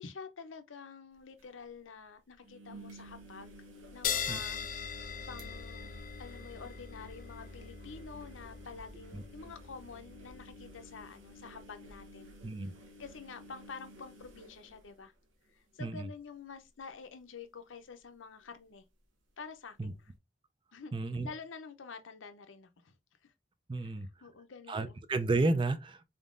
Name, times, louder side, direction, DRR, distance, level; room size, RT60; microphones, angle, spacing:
voice 1, 0.0-5.9 6.2-12.3 13.0-15.1 15.5-18.8 19.4-20.1 20.7-20.9 21.2-22.9 23.2-23.3 23.8-23.9 24.2-25.0, left 5 dB, 80° left, 0.7 m, -48 dB
sound 1, 1.1-1.2 1.4-1.5 2.4-15.5 15.9-16.3 16.6-16.7 18.5-18.6, equal, 90° right, 1.2 m, -53 dB
sound 2, 4.0-11.0, left 7 dB, 45° left, 0.5 m, -40 dB
voice 2, 20.9-21.3 23.7-24.1 24.7-26.0, right 3 dB, 25° right, 0.4 m, -31 dB
4.0 x 3.6 x 2.4 m
head